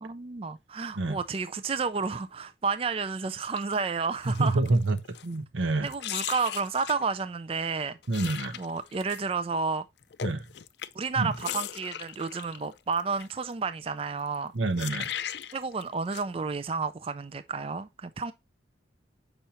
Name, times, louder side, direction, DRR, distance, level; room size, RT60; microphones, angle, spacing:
voice 1, 0.0-4.6 5.8-8.0 8.6-9.9 10.9-14.5 15.5-18.3, right 4 dB, 30° right, 0.3 m, -31 dB
sound 1, 3.6-3.8 4.2-5.4 5.9-7.1 8.0-9.2 10.0-13.3 14.3-14.4 14.8-15.8 16.1-16.2, left 10 dB, 60° left, 0.4 m, -37 dB
voice 2, 4.3-5.0 5.2-5.9 8.1-8.6 10.2-10.4 11.2-11.3 14.5-15.1, right 2 dB, 90° right, 1.0 m, -27 dB
7.0 x 5.5 x 2.9 m
head